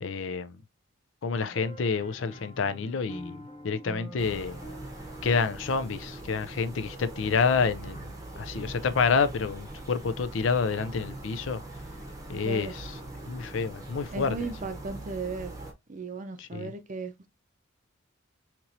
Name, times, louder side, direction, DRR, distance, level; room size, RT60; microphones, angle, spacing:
voice 1, 0.0-0.6 1.2-4.6 5.2-11.6 12.3-13.0 13.3-14.5 16.4-16.7, left 5 dB, 65° left, 0.5 m, -28 dB
sound 1, 1.3-6.9, equal, 30° left, 0.9 m, -46 dB
sound 2, 4.2-15.7, right 2 dB, 15° right, 0.8 m, -42 dB
voice 2, 12.4-12.7 14.1-15.6 15.9-17.3, right 4 dB, 40° right, 0.6 m, -36 dB
4.3 x 3.0 x 2.6 m
head